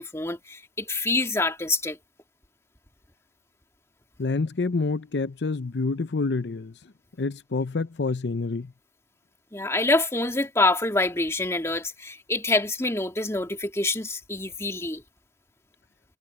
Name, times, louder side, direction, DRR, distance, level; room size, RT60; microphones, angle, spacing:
voice 1, 0.0-2.0 9.5-15.0, left 2 dB, 15° left, 2.0 m, -26 dB
voice 2, 4.2-6.7 7.2-8.7, left 3 dB, 75° left, 0.6 m, -27 dB
head